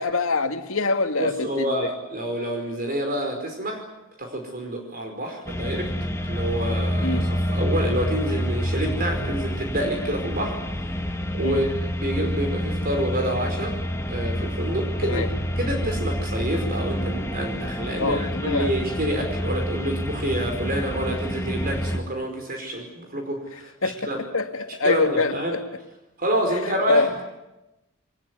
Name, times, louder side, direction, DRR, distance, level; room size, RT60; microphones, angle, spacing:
voice 1, 0.0-1.7 7.0-7.3 11.4-11.6 15.0-15.3 18.0-18.8 23.8-25.6 26.9-27.1, left 3 dB, 70° left, 6 dB, 2.0 m, -24 dB
voice 2, 1.2-3.9 4.2-5.9 6.3-10.6 11.3-13.8 14.1-15.2 15.6-24.2 24.8-25.6 26.2-27.2, right 1 dB, 45° right, 3 dB, 4.9 m, -28 dB
sound 1, 5.5-22.0, equal, 15° left, 1.9 m, -28 dB
23.5 x 20.5 x 9.6 m, 0.97 s
head